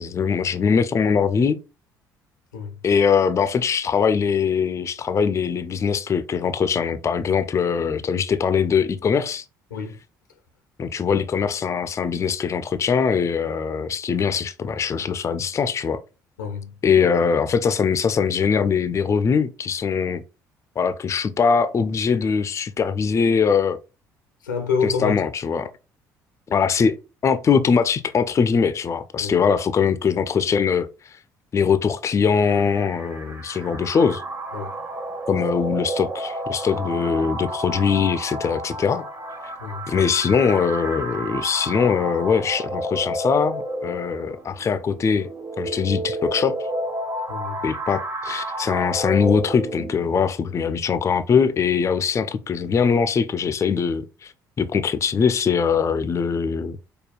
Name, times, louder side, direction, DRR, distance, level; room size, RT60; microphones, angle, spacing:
voice 1, 0.0-1.6 2.8-9.4 10.8-16.0 16.8-20.2 20.8-23.8 24.8-25.7 26.5-27.0 27.2-30.9 31.5-34.2 35.3-39.1 39.9-45.3 45.6-46.6 47.6-54.3 54.6-56.8, left 6 dB, 30° left, 0.4 m, -22 dB
voice 2, 16.4-16.8 24.4-25.2 29.2-29.4 34.5-34.8 39.6-39.9 47.3-47.6, left 6 dB, 85° left, 0.5 m, -27 dB
sound 1, 32.3-50.3, right 1 dB, 25° right, 0.8 m, -31 dB
4.9 x 2.2 x 2.3 m
figure-of-eight pair, 50°, 10 cm